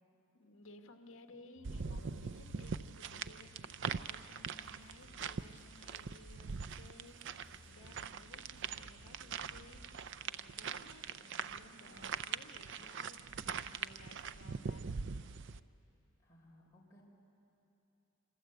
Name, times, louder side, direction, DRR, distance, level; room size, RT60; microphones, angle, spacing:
voice 1, 0.3-14.9, left 2 dB, 65° left, 5 dB, 1.6 m, -58 dB
sound 1, 1.6-4.5, left 4 dB, 90° left, 0.7 m, -58 dB
sound 2, 1.6-15.6, right 6 dB, 55° right, 0.5 m, -43 dB
sound 3, 4.6-10.1, equal, 75° right, 3.9 m, -61 dB
voice 2, 16.2-17.0, left 1 dB, 15° left, -4 dB, 4.3 m, -62 dB
27.5 x 25.5 x 7.9 m, 2.9 s
head